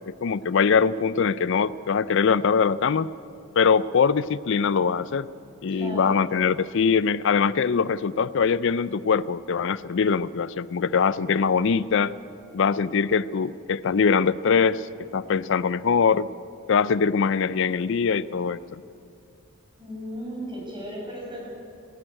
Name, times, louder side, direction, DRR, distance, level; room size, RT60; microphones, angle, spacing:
voice 1, 0.1-3.1 3.6-5.3 5.6-12.1 12.5-16.3 16.7-18.6, left 6 dB, 60° left, 17 dB, 0.4 m, -22 dB
voice 2, 5.7-6.2 19.8-21.5, equal, 25° right, -2 dB, 6.4 m, -35 dB
18.0 x 17.5 x 8.8 m, 2.5 s
head